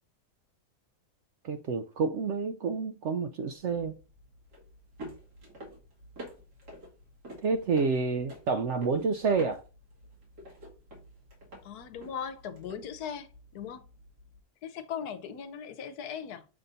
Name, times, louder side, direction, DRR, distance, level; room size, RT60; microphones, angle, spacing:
voice 1, 1.4-3.9 7.4-9.6, right 4 dB, 70° right, 0.7 m, -29 dB
sound 1, 3.5-14.4, equal, 90° right, 2.5 m, -50 dB
voice 2, 11.6-13.9 14.6-16.5, left 7 dB, 80° left, 1.2 m, -39 dB
7.5 x 2.6 x 5.5 m
omnidirectional pair, 1.7 m